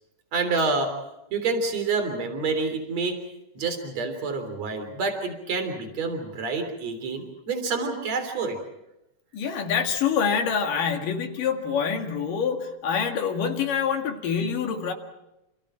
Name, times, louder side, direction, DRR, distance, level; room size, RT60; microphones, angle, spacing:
voice 1, 0.3-1.0 1.3-3.2 3.5-8.6, right 4 dB, 55° right, 7 dB, 4.6 m, -28 dB
voice 2, 9.3-14.9, left 7 dB, 80° left, 3 dB, 3.7 m, -26 dB
29.0 x 28.5 x 4.5 m, 0.90 s
omnidirectional pair, 3.8 m